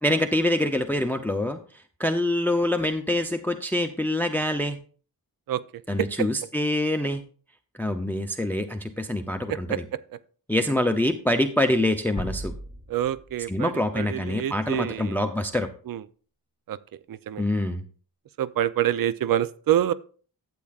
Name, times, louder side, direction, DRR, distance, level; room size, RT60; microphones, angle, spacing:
voice 1, 0.0-1.6 2.0-4.8 5.9-7.2 7.8-9.8 10.5-12.5 13.5-15.7 17.4-17.8, left 1 dB, 5° left, 7 dB, 0.5 m, -25 dB
voice 2, 9.5-9.8 12.9-15.2 15.9-16.0 16.7-16.8 17.1-17.4 18.4-19.9, right 11 dB, 65° right, 16 dB, 0.5 m, -26 dB
sound 1, 12.2-14.1, equal, 15° right, 1.3 m, -36 dB
12.0 x 8.5 x 2.4 m, 0.42 s
wide cardioid pair, 135°, 37 cm